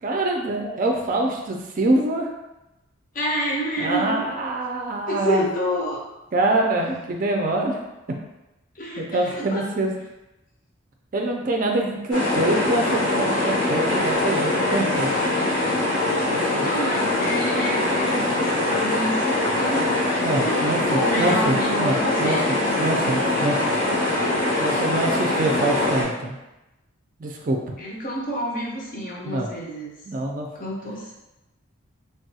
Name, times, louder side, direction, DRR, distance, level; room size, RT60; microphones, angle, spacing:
voice 1, 0.0-2.3 3.8-5.5 6.3-7.8 9.0-9.9 11.1-15.2 16.3-16.7 20.2-23.8 24.6-26.4 27.2-27.8 29.2-29.5 30.1-30.7, right 2 dB, 40° right, 1 dB, 0.4 m, -25 dB
voice 2, 3.1-4.2 5.1-6.0 8.8-9.6 16.6-19.2 19.5-19.9 20.4-22.6 27.8-29.9 30.5-31.2, equal, 40° left, -3 dB, 0.6 m, -28 dB
sound 1, 12.1-26.0, left 2 dB, 80° left, 1.2 m, -23 dB
3.4 x 2.3 x 2.7 m, 0.97 s
head